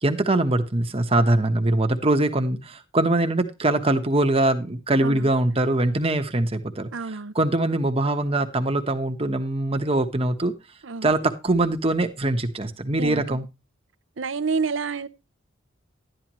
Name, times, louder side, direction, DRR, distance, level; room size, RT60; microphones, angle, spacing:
voice 1, 0.0-6.9 7.3-10.5 11.0-13.4, right 2 dB, 30° right, 1.2 m, -22 dB
voice 2, 6.9-7.3 10.8-11.1 13.0-13.4 14.2-15.1, right 4 dB, 70° right, 0.7 m, -28 dB
12.0 x 10.5 x 3.1 m
head